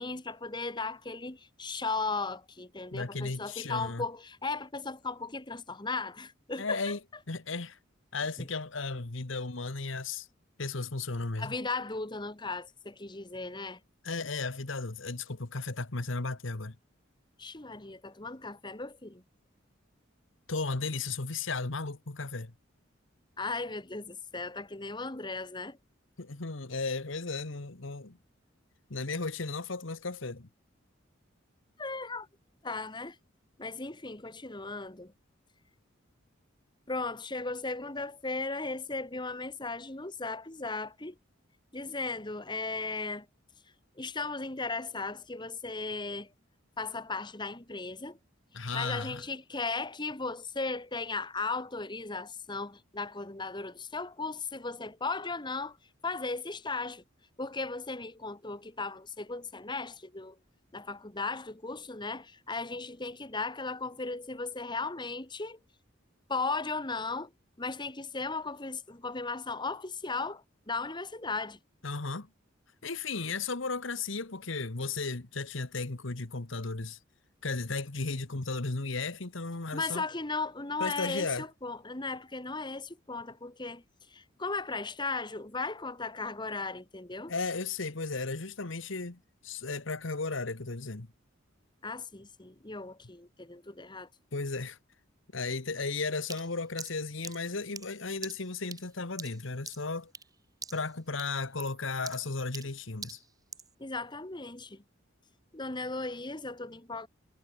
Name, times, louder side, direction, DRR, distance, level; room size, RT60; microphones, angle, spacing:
voice 1, 0.0-7.0 8.4-8.5 11.4-13.8 17.4-19.2 23.4-25.8 31.8-32.3 32.6-33.2 33.6-35.1 36.9-41.2 41.7-43.3 44.0-46.3 46.8-48.2 48.7-55.8 56.0-57.0 57.4-60.4 60.7-65.6 66.3-67.3 67.6-71.6 79.7-83.8 84.1-87.3 91.8-94.1 103.8-104.8 105.5-107.1, left 3 dB, 25° left, 1.7 m, -36 dB
voice 2, 2.9-4.0 6.6-7.0 7.3-7.8 8.1-10.3 10.6-11.5 14.0-16.8 20.5-22.5 26.2-28.2 28.9-30.5 48.5-49.2 71.8-72.3 72.8-77.0 77.4-80.0 80.8-81.5 87.3-91.1 94.3-94.8 95.3-100.1 100.7-103.2, left 3 dB, 70° left, 1.5 m, -35 dB
sound 1, 96.3-100.3 100.6-100.9 101.2-103.7, right 6 dB, 20° right, 1.3 m, -45 dB
head